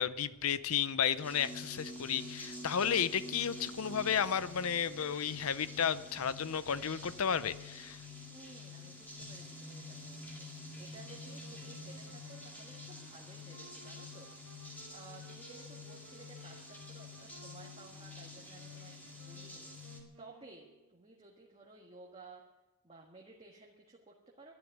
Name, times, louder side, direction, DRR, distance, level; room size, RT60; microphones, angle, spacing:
voice 1, 0.0-8.0, left 8 dB, 75° left, 15 dB, 0.6 m, -33 dB
sound 1, 1.2-20.0, left 2 dB, 10° left, 2.3 m, -48 dB
voice 2, 8.3-14.3 14.6-22.4 22.8-24.5, right 3 dB, 25° right, -2 dB, 1.6 m, -56 dB
sound 2, 11.0-21.0, right 3 dB, 75° right, 1.4 m, -60 dB
12.0 x 10.5 x 9.4 m, 1.1 s
head